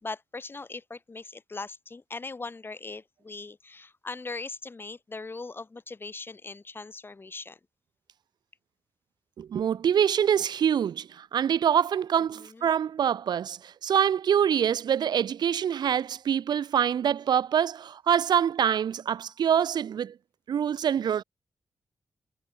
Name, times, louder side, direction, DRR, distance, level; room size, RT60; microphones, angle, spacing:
voice 1, 0.0-7.6 12.4-12.7, left 3 dB, 30° left, 5.1 m, -40 dB
voice 2, 9.4-20.1 20.5-21.2, right 8 dB, 85° right, 1.7 m, -25 dB
wide cardioid pair, 105°, 7 cm